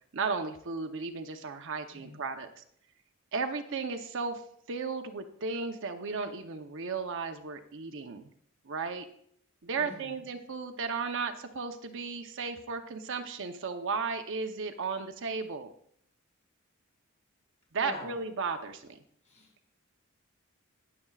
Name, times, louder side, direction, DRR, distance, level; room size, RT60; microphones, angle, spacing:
voice 1, 0.1-2.6 3.3-4.4 4.7-8.3 8.7-9.1 9.6-15.7 17.7-19.0, right 4 dB, 60° right, 6 dB, 0.8 m, -35 dB
voice 2, 9.7-10.3 17.8-18.1 19.2-19.5, left 2 dB, 35° left, -1 dB, 4.1 m, -45 dB
18.5 x 7.0 x 2.4 m, 0.64 s
head